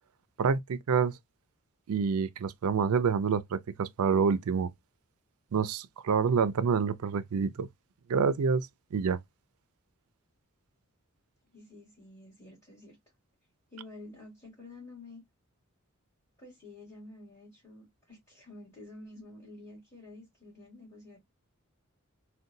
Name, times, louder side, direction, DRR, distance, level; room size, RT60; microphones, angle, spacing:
voice 1, 0.4-1.1 1.9-4.7 5.5-7.7 8.1-9.2, right 6 dB, 80° right, 0.4 m, -27 dB
voice 2, 11.5-13.0 13.7-15.2 16.4-21.2, left 2 dB, 15° left, 2.1 m, -50 dB
3.8 x 2.2 x 2.6 m
head